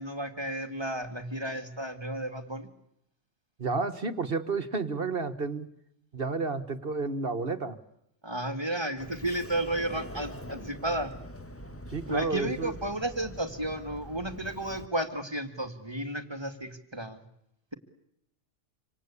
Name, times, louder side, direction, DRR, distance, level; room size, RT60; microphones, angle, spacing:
voice 1, 0.0-2.7 8.2-11.2 12.1-17.2, right 1 dB, 20° right, 8 dB, 2.2 m, -33 dB
voice 2, 3.6-5.7 6.1-7.8 11.9-12.7, right 3 dB, 45° right, 12 dB, 1.7 m, -31 dB
Sliding door, 9.0-14.9, equal, 10° left, 1.4 m, -44 dB
26.5 x 26.0 x 8.5 m, 0.77 s
omnidirectional pair, 1.3 m